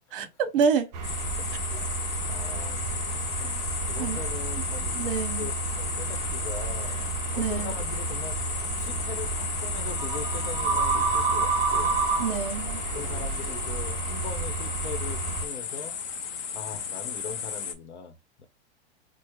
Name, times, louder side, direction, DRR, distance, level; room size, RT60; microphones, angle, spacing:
voice 1, 0.1-0.9 3.5-3.6 4.0-4.2 4.9-5.5 7.4-7.7 12.2-12.8, right 6 dB, 55° right, 0.8 m, -27 dB
sound 1, 0.9-15.5, right 4 dB, 25° right, 0.4 m, -30 dB
sound 2, 1.0-17.7, left 7 dB, 30° left, 0.5 m, -34 dB
voice 2, 1.4-1.9 2.3-3.5 3.9-4.9 5.4-5.5 5.8-8.4 8.8-12.0 12.9-15.9 16.5-18.5, left 7 dB, 90° left, 0.9 m, -41 dB
3.2 x 2.0 x 3.5 m
supercardioid pair, 155°, 33 cm